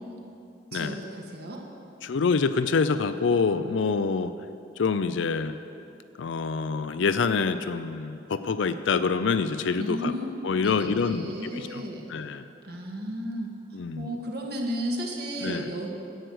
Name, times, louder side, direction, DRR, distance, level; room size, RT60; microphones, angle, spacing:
voice 1, 0.7-1.6 9.8-12.1 12.6-15.9, equal, 55° right, 0 dB, 1.7 m, -34 dB
voice 2, 2.0-4.3 4.8-5.5 6.2-10.1 10.4-12.4 13.7-14.1 15.4-15.6, left 5 dB, 75° left, 11 dB, 0.4 m, -26 dB
11.0 x 7.7 x 7.9 m, 2.7 s
head